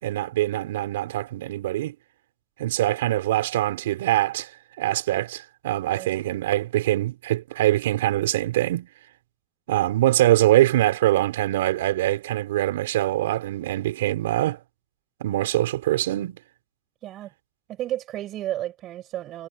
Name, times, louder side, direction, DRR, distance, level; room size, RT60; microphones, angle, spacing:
voice 1, 0.0-1.9 2.6-4.5 4.8-8.9 9.7-14.6 15.2-16.4, right 15 dB, 85° right, 5.8 m, -23 dB
voice 2, 17.7-19.5, right 13 dB, 40° right, 6.5 m, -32 dB
supercardioid pair, 125°, 0 cm